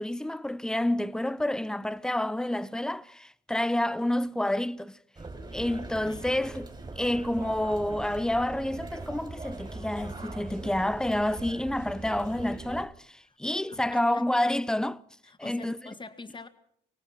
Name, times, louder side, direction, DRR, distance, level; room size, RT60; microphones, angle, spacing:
voice 1, 0.0-5.0 5.5-6.7 7.0-15.0 15.4-15.8, left 1 dB, 5° left, 0.7 m, -29 dB
sound 1, 5.1-12.9, right 3 dB, 20° right, 4.5 m, -41 dB
voice 2, 13.7-14.2 15.2-16.5, left 3 dB, 25° left, 2.2 m, -45 dB
23.5 x 18.5 x 6.0 m
cardioid pair, 90°, 20 cm